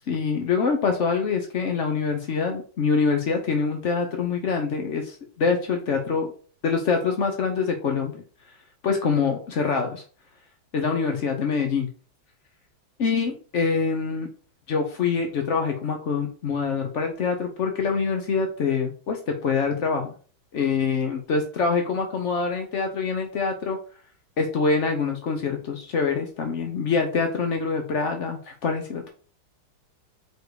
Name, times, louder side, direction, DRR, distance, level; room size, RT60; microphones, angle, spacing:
voice 1, 0.1-6.3 6.6-8.2 8.8-9.9 10.7-11.9 13.0-14.3 14.7-20.1 20.5-23.8 24.4-29.1, left 5 dB, 65° left, 4 dB, 0.7 m, -25 dB
4.6 x 4.4 x 4.8 m, 0.41 s
omnidirectional pair, 2.3 m